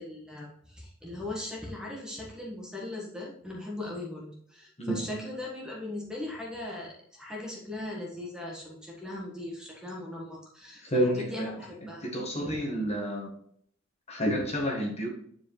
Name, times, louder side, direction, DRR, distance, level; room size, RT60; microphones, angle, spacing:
voice 1, 0.0-12.1 12.3-12.6, left 2 dB, 5° right, -3 dB, 1.5 m, -39 dB
voice 2, 4.8-5.2 10.8-11.6 11.8-13.3 14.1-15.1, equal, 30° left, -1 dB, 1.7 m, -30 dB
9.6 x 4.8 x 3.2 m, 0.65 s
head